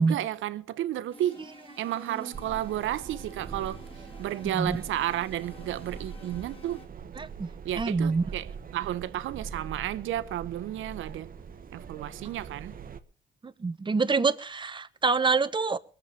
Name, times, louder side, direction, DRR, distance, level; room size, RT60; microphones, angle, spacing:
voice 1, 0.0-1.4 1.8-3.8 4.2-6.8 7.6-11.3 11.7-12.7, right 12 dB, 80° right, 0.9 m, -32 dB
sound 1, 1.1-6.9, equal, 25° left, 2.9 m, -50 dB
sound 2, 2.3-13.0, right 6 dB, 45° right, 1.2 m, -43 dB
voice 2, 4.4-4.8 7.2-7.5 7.8-8.3 13.4-15.8, right 4 dB, 25° right, 0.9 m, -26 dB
21.5 x 7.4 x 5.6 m
cardioid pair, 90°, 20 cm